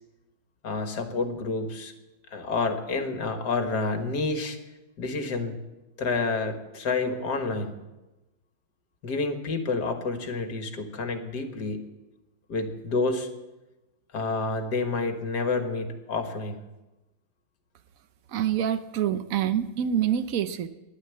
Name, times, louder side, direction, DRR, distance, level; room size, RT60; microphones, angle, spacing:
voice 1, 0.6-1.9 2.3-4.6 5.0-5.6 6.0-7.8 9.0-11.9 12.5-13.3 14.1-16.6, left 3 dB, 50° left, 6 dB, 2.1 m, -29 dB
voice 2, 18.3-20.7, right 9 dB, 80° right, 12 dB, 0.7 m, -26 dB
15.0 x 11.5 x 8.4 m, 1.0 s
omnidirectional pair, 2.4 m